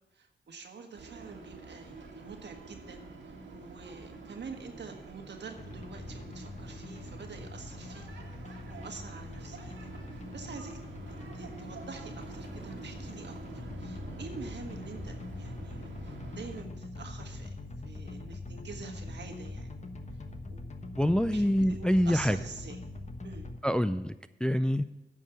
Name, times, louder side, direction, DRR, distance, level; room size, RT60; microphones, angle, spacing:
voice 1, 0.1-8.1 8.7-10.8 11.3-17.6 17.8-19.8 20.1-20.2 20.5-20.7 21.3-22.8 23.2-23.5, right 4 dB, 70° right, 4 dB, 1.5 m, -47 dB
sound 1, 0.9-16.6, right 3 dB, 85° right, 1.9 m, -47 dB
sound 2, 5.6-23.6, left 2 dB, 40° left, 1.1 m, -43 dB
voice 2, 21.0-22.4 23.6-24.1 24.4-24.8, equal, 5° left, 11 dB, 0.4 m, -25 dB
9.5 x 5.5 x 7.8 m, 0.95 s
cardioid pair, 50°, 19 cm